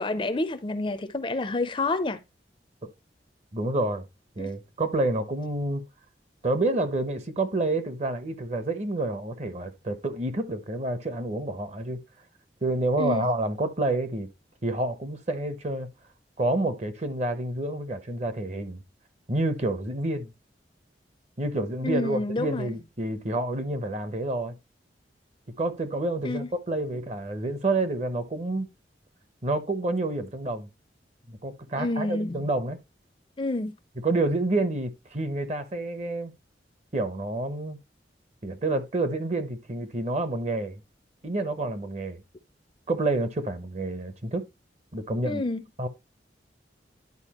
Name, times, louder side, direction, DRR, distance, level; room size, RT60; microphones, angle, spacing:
voice 1, 0.0-2.2 4.4-4.5 13.0-13.3 21.8-22.7 26.2-26.5 31.8-32.5 33.4-33.7 45.3-45.6, left 2 dB, 30° left, 0.5 m, -28 dB
voice 2, 3.5-4.1 4.4-5.9 6.4-12.0 12.6-14.3 14.6-15.9 16.4-18.8 19.3-20.3 21.4-24.6 25.6-28.7 29.4-30.7 31.3-32.8 34.0-36.3 36.9-37.8 38.4-40.8 41.2-42.2 42.9-44.5 44.9-45.4 45.8-45.9, right 2 dB, 40° right, 0.8 m, -28 dB
10.5 x 4.7 x 3.0 m
head